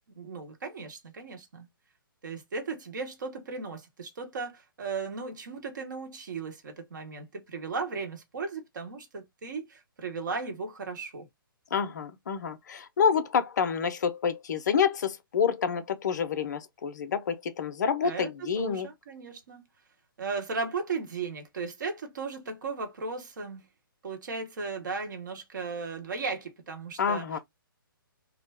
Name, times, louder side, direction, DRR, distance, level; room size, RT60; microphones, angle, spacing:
voice 1, 0.1-1.7 2.2-11.3 18.0-18.3 18.6-19.6 20.2-23.6 24.0-27.4, right 4 dB, 55° right, 0.9 m, -36 dB
voice 2, 11.7-18.9 27.0-27.4, left 7 dB, 50° left, 0.5 m, -28 dB
2.3 x 2.1 x 3.3 m
figure-of-eight pair, 130°, 12 cm